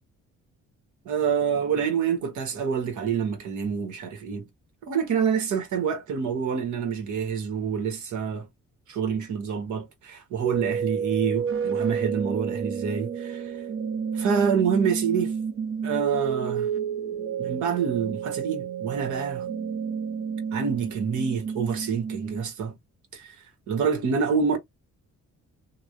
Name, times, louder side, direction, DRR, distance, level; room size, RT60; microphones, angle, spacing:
voice 1, 1.0-4.5 4.8-8.5 8.9-13.5 14.1-15.3 15.8-16.7 17.4-19.5 20.5-22.7 23.1-23.4 23.7-24.6, right 6 dB, 75° right, 1.4 m, -27 dB
sound 1, 10.4-22.4, right 7 dB, 45° right, 0.8 m, -30 dB
3.1 x 2.4 x 2.5 m
cardioid pair, 90°, 30 cm